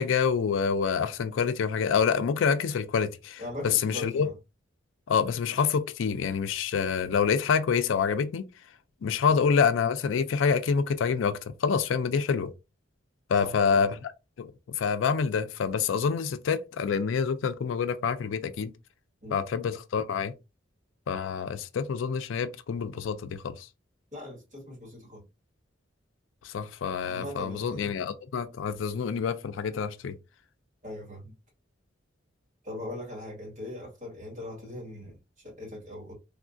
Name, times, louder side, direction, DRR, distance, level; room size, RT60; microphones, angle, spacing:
voice 1, 0.0-4.3 5.1-8.5 9.0-12.5 13.3-14.1 14.4-18.7 19.3-20.3 21.1-23.7 26.4-30.2, left 6 dB, 80° left, 0.4 m, -27 dB
voice 2, 3.4-4.3 13.4-13.8 19.2-19.5 24.1-25.2 27.1-27.8 30.8-31.3 32.6-36.1, left 1 dB, 40° right, 1.7 m, -40 dB
3.5 x 2.3 x 2.5 m
head